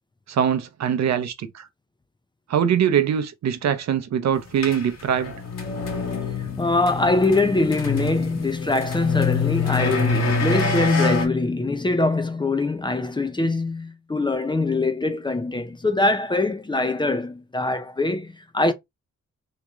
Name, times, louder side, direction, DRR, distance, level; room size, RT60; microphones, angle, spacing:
voice 1, 0.3-1.7 2.5-5.3, right 8 dB, 65° right, 0.7 m, -22 dB
sound 1, 4.6-11.3, left 4 dB, 60° left, 1.6 m, -26 dB
voice 2, 6.4-18.7, left 2 dB, 15° left, 0.5 m, -23 dB
3.0 x 2.9 x 3.5 m
cardioid pair, 105°, 30 cm